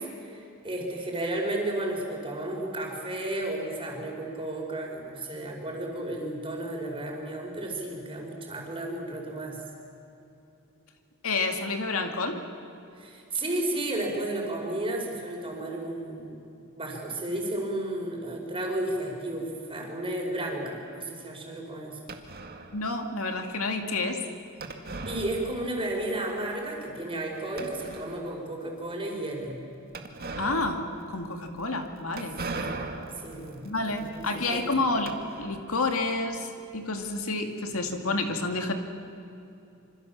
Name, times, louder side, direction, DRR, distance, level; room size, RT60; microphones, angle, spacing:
voice 1, 0.0-9.6 13.0-22.0 25.1-29.6 32.5-32.8 33.2-34.7, right 1 dB, 25° right, 0 dB, 5.4 m, -33 dB
voice 2, 11.2-12.4 22.7-24.2 30.4-32.4 33.6-36.5 36.7-38.7, left 3 dB, 70° left, 5 dB, 2.3 m, -29 dB
sound 1, 22.1-22.9 24.6-26.0 26.2-26.3 26.9-27.0 27.6-28.4 29.9-35.8, right 3 dB, 45° right, 2.1 m, -39 dB
26.5 x 26.0 x 7.4 m, 2.8 s
head